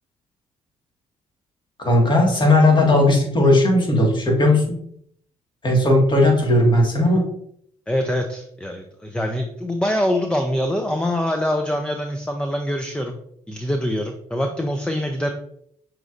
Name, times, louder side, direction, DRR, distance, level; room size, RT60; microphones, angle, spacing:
voice 1, 1.8-4.6 5.6-7.2, left 1 dB, 35° left, 0 dB, 1.7 m, -16 dB
voice 2, 7.9-13.1 13.5-15.3, left 1 dB, 5° left, 4 dB, 0.6 m, -24 dB
6.1 x 3.1 x 2.5 m, 0.68 s
hypercardioid pair, 55°, 14 cm